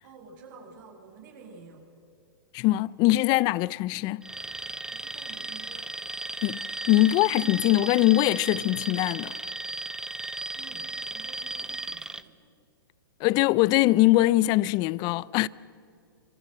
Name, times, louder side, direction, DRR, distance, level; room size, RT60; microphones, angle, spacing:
voice 1, 0.0-1.9 4.9-5.9 10.5-12.5, right 4 dB, 50° right, 6.8 m, -50 dB
voice 2, 2.5-4.2 6.4-9.3 13.2-15.5, left 17 dB, 35° left, 0.6 m, -22 dB
Alarm, 4.2-12.2, right 2 dB, 5° right, 0.8 m, -35 dB
28.0 x 26.0 x 7.6 m
hypercardioid pair, 125°, 12 cm